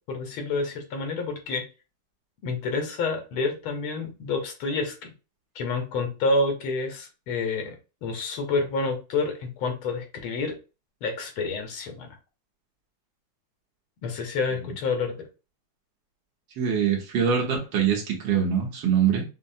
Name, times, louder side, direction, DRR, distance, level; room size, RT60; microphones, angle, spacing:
voice 1, 0.1-1.7 2.4-5.1 5.6-7.8 8.0-10.6 11.0-12.1 14.0-15.1, left 3 dB, 80° left, 4 dB, 1.8 m, -28 dB
voice 2, 16.6-19.2, right 7 dB, 65° right, 0 dB, 1.6 m, -23 dB
5.5 x 2.0 x 2.6 m, 0.31 s
omnidirectional pair, 2.4 m